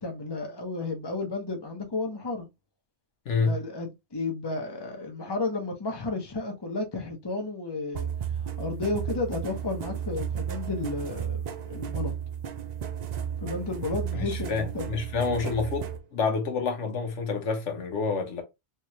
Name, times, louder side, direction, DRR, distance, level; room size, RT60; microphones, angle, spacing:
voice 1, 0.0-2.5 3.4-8.1 8.6-12.1 13.4-14.9, left 3 dB, 25° left, 0.9 m, -32 dB
voice 2, 3.3-3.6 14.2-18.4, left 4 dB, 75° left, 1.3 m, -28 dB
sound 1, 7.9-16.0, right 8 dB, 60° right, 0.4 m, -33 dB
3.4 x 3.1 x 2.9 m
omnidirectional pair, 1.2 m